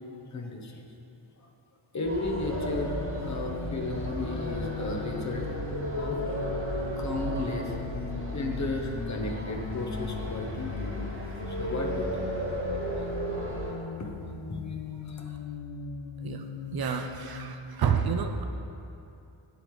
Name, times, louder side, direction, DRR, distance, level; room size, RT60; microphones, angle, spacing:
voice 1, 0.3-0.8 1.9-5.5 5.9-6.2 7.0-7.8 8.3-11.2 11.5-12.3 12.9-13.0 14.0-14.1 14.5-14.6 15.1-15.4, left 2 dB, 35° left, 2 dB, 0.8 m, -34 dB
sound 1, 2.0-13.7, right 1 dB, 25° right, 1.5 m, -34 dB
sound 2, 2.3-17.5, left 5 dB, 80° left, 0.6 m, -39 dB
voice 2, 16.2-18.4, right 7 dB, 55° right, 6 dB, 0.5 m, -29 dB
8.3 x 7.7 x 3.2 m, 2.7 s
wide cardioid pair, 130°, 47 cm